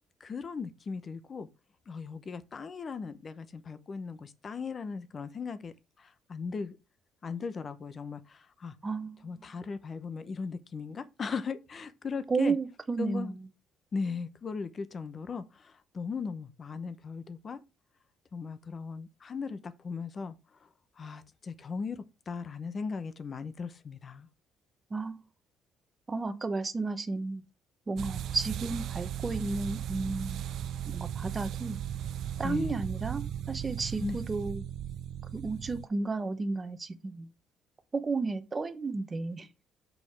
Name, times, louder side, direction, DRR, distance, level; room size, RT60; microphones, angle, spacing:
voice 1, 0.2-1.5 1.9-6.8 7.2-8.8 9.2-12.6 13.0-13.3 13.9-17.6 18.3-20.3 20.6-20.7 21.0-24.3 32.4-32.8 34.0-34.2, left 5 dB, 30° left, 0.9 m, -38 dB
voice 2, 8.8-9.5 12.3-13.4 24.9-25.2 26.1-27.4 27.9-30.4 30.9-31.8 32.4-34.6 35.3-37.3 37.9-39.5, right 3 dB, 20° right, 1.0 m, -33 dB
sound 1, 28.0-35.9, right 10 dB, 60° right, 0.3 m, -37 dB
6.6 x 5.2 x 5.9 m
cardioid pair, 155°, 0 cm